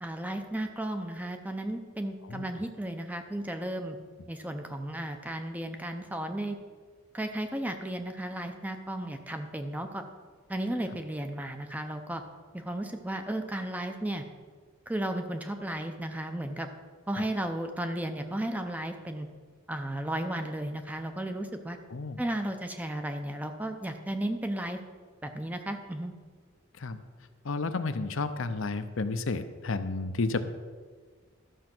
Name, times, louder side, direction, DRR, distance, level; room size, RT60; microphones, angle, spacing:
voice 1, 0.0-4.0 4.3-6.6 7.1-10.0 10.5-12.2 12.5-14.2 14.9-16.7 17.1-19.3 19.7-21.8 22.2-24.8 25.2-26.1, right 1 dB, 5° right, 6 dB, 0.6 m, -34 dB
voice 2, 27.4-30.4, left 3 dB, 65° left, 10 dB, 0.6 m, -31 dB
13.0 x 6.3 x 6.0 m, 1.5 s
head